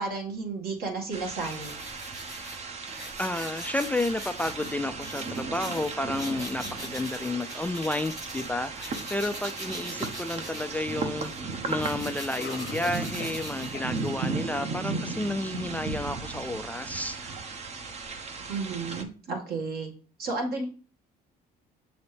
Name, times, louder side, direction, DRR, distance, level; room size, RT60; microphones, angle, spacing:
voice 1, 0.0-1.7 18.5-19.9 20.2-20.7, right 3 dB, 65° right, 1.9 m, -32 dB
sound 1, 1.1-19.0, right 4 dB, 40° right, 0.8 m, -36 dB
sound 2, 1.4-8.5 8.7-14.2, equal, 20° right, 1.4 m, -43 dB
voice 2, 3.2-17.4, left 1 dB, 10° left, 0.3 m, -31 dB
Cough, 12.3-13.5 13.7-13.9 14.4-14.5 15.1-15.2, left 6 dB, 75° left, 0.9 m, -40 dB
6.9 x 4.1 x 3.4 m
cardioid pair, 110°, 17 cm